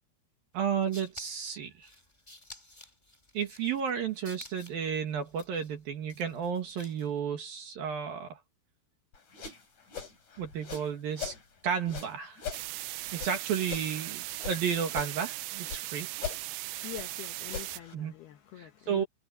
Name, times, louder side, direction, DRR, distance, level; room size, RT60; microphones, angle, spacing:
voice 1, 0.5-1.9 3.3-8.4 10.4-11.3 11.6-12.4 13.1-16.1 17.9-18.1 18.6-19.1, right 7 dB, 60° right, 2.9 m, -32 dB
sound 1, 0.6-7.2, left 1 dB, 10° left, 4.1 m, -53 dB
sound 2, 9.1-11.4 11.8-14.6 14.9-15.9 16.1-17.9, left 6 dB, 35° left, 7.2 m, -41 dB
sound 3, 12.5-17.8, right 21 dB, 85° right, 3.4 m, -38 dB
voice 2, 16.6-19.0, left 13 dB, 70° left, 2.6 m, -45 dB
omnidirectional pair, 5.8 m